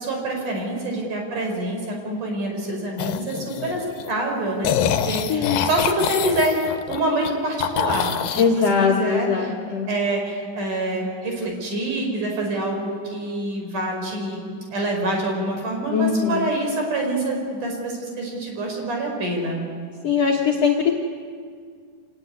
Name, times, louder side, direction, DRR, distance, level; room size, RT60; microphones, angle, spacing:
voice 1, 0.0-6.6 6.9-9.5 9.9-14.5 14.7-19.6, right 1 dB, 65° right, 1 dB, 6.2 m, -26 dB
sound 1, 3.0-4.1 4.6-7.3 7.6-8.5, left 9 dB, 80° left, 2.6 m, -25 dB
voice 2, 5.3-5.7 8.4-9.9 15.9-16.5 20.0-20.9, left 6 dB, 55° left, -1 dB, 2.3 m, -21 dB
26.0 x 19.0 x 9.6 m, 2.1 s
omnidirectional pair, 3.9 m